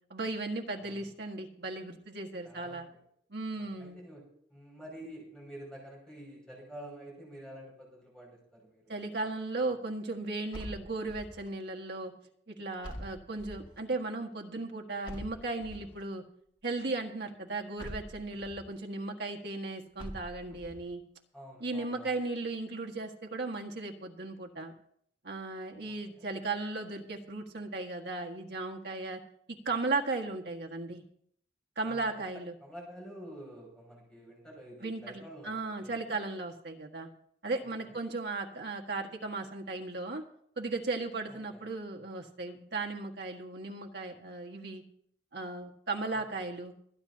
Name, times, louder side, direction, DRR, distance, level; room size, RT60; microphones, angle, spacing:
voice 1, 0.1-2.9 3.3-4.0 8.9-12.1 12.5-16.2 16.6-21.0 21.6-24.7 25.2-29.2 29.5-31.0 31.8-32.5 34.8-37.1 37.4-40.2 40.6-44.8 45.3-46.7, right 3 dB, 60° right, 2 dB, 1.7 m, -36 dB
voice 2, 2.4-2.9 3.6-4.2 4.5-8.9 21.3-22.2 25.8-26.3 31.8-32.2 32.6-36.2 37.6-38.0 41.3-41.6 46.1-46.2, right 1 dB, 5° left, -3 dB, 6.3 m, -49 dB
sound 1, 10.5-11.5 12.8-13.8 15.0-16.0 17.8-18.6 20.0-20.8, equal, 25° left, 2.2 m, -44 dB
25.5 x 9.9 x 2.9 m, 0.67 s
head